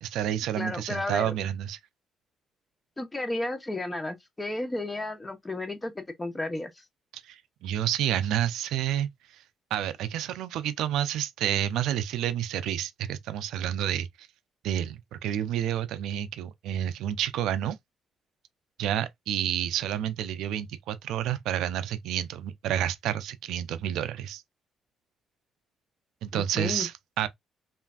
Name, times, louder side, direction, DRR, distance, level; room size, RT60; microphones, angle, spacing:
voice 1, 0.0-1.8 7.1-9.4 9.7-14.3 14.6-17.8 18.8-24.4 26.2-27.3, right 11 dB, 85° right, 0.3 m, -29 dB
voice 2, 0.6-1.3 3.0-6.7 26.3-26.9, left 2 dB, 20° left, 0.8 m, -33 dB
3.2 x 2.4 x 2.3 m
cardioid pair, 90°, 0 cm